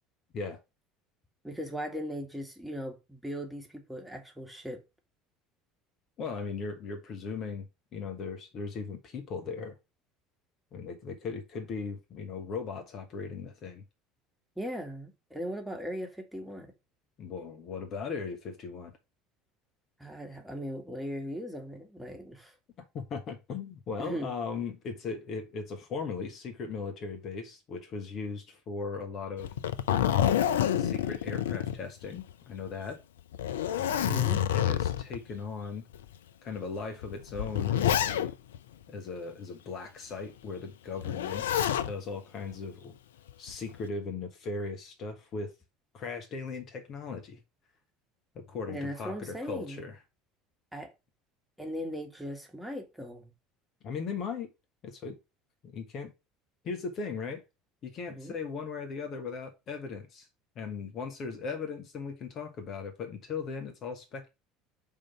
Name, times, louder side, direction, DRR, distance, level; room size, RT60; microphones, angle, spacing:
voice 1, 1.4-4.8 14.6-16.7 20.0-22.6 24.0-24.3 31.1-31.3 34.0-34.4 48.7-49.9 50.7-50.9 51.6-53.3 58.1-58.4, equal, 5° right, 1.9 m, -38 dB
voice 2, 6.2-9.7 10.7-13.8 17.2-18.9 22.9-29.5 30.1-33.0 33.7-34.2 34.5-35.8 36.4-38.3 38.9-41.6 41.8-42.9 43.4-45.5 45.9-47.4 48.3-50.0 53.8-54.5 54.8-55.2 55.7-56.1 56.6-57.4 57.8-60.3 60.5-64.3, left 5 dB, 45° left, 1.2 m, -38 dB
Zipper (clothing), 29.4-32.3 32.7-32.8 33.3-35.2 35.9-36.0 37.0-38.6 41.0-41.9 43.3-43.8, left 10 dB, 70° left, 0.4 m, -28 dB
5.0 x 3.8 x 5.8 m
figure-of-eight pair, 65°, 0 cm